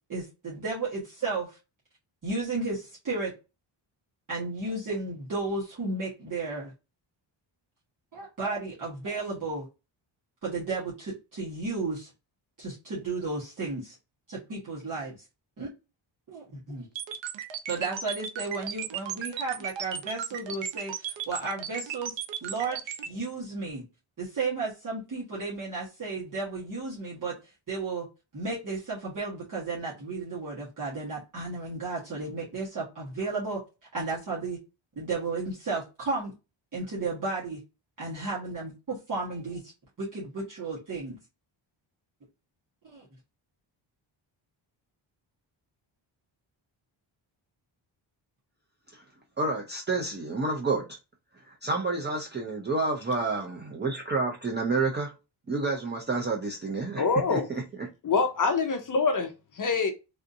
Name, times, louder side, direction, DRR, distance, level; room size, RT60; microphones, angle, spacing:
voice 1, 0.1-1.6 2.2-3.3 4.3-6.7 8.1-9.7 10.4-12.1 12.6-14.0 14.3-15.2 15.6-15.7 16.3-16.9 17.7-23.8 24.2-27.4 27.7-28.1 28.3-33.6 33.9-34.6 34.9-36.3 36.7-37.6 38.0-39.7 40.0-41.2 42.8-43.1, right 3 dB, 40° right, 1.3 m, -33 dB
sound 1, 17.0-23.1, right 8 dB, 65° right, 0.7 m, -35 dB
voice 2, 49.4-50.9 51.3-55.1 55.5-57.0 57.3-57.6, right 3 dB, 25° right, 0.5 m, -29 dB
voice 3, 57.0-57.5 58.0-59.9, left 4 dB, 40° left, 0.6 m, -25 dB
3.5 x 2.6 x 2.6 m
wide cardioid pair, 145°, 47 cm